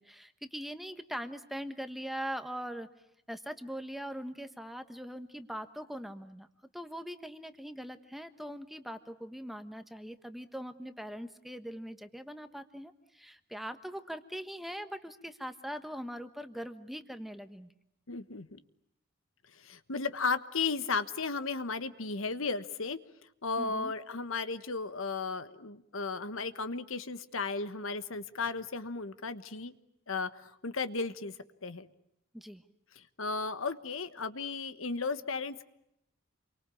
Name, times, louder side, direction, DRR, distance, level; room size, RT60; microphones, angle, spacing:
voice 1, 0.0-2.9 3.3-6.5 6.7-17.7 23.6-23.9 32.3-32.6, equal, ahead, 9 dB, 1.3 m, -41 dB
voice 2, 18.1-18.6 19.6-23.0 23.4-29.7 30.1-31.3 31.6-31.9 32.9-35.6, left 4 dB, 70° left, 12 dB, 1.3 m, -35 dB
29.0 x 24.0 x 8.5 m, 0.80 s
head